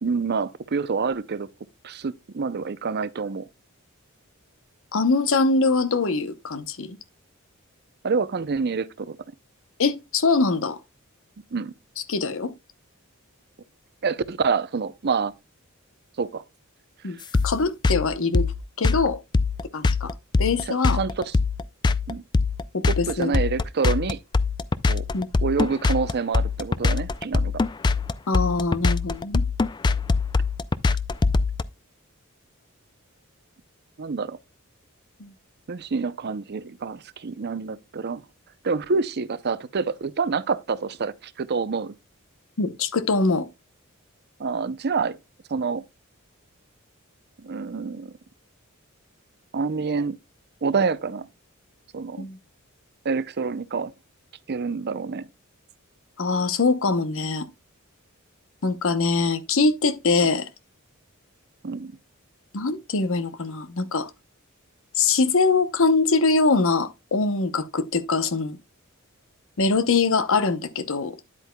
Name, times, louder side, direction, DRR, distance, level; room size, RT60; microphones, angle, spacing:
voice 1, 0.0-1.5 1.8-3.5 8.0-9.2 11.5-11.7 14.0-15.3 16.2-16.4 20.7-21.3 22.1-22.2 22.9-24.2 24.9-25.1 25.4-27.5 34.0-34.4 35.7-38.2 38.6-41.9 44.4-45.2 45.5-45.8 47.4-48.1 49.5-50.2 50.6-51.3 51.9-52.3 53.0-53.9 54.5-55.3 60.2-60.3 61.6-61.9, right 5 dB, 50° right, 0.6 m, -27 dB
voice 2, 4.9-7.0 9.8-10.8 12.1-12.5 17.0-17.2 17.4-18.5 18.8-19.2 19.7-21.0 22.7-23.3 25.1-25.3 28.3-29.4 35.2-35.3 42.6-43.5 52.2-52.4 56.2-57.5 58.6-60.5 62.5-64.1 65.0-68.6 69.6-71.2, left 3 dB, 65° left, 0.8 m, -23 dB
sound 1, 17.3-31.6, left 4 dB, 20° left, 0.3 m, -22 dB
9.9 x 8.2 x 2.2 m
head